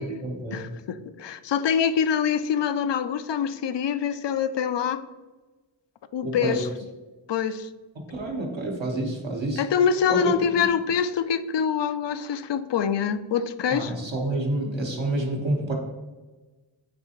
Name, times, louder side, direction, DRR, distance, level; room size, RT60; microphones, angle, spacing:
voice 1, 0.0-0.7 6.2-6.6 7.9-9.6 10.1-10.3 13.7-15.7, right 2 dB, 70° right, -1 dB, 1.5 m, -28 dB
voice 2, 0.5-5.0 6.1-6.7 7.3-7.7 9.6-13.9, left 7 dB, 65° left, 13 dB, 0.5 m, -25 dB
9.4 x 3.3 x 3.0 m, 1.2 s
wide cardioid pair, 55°, 48 cm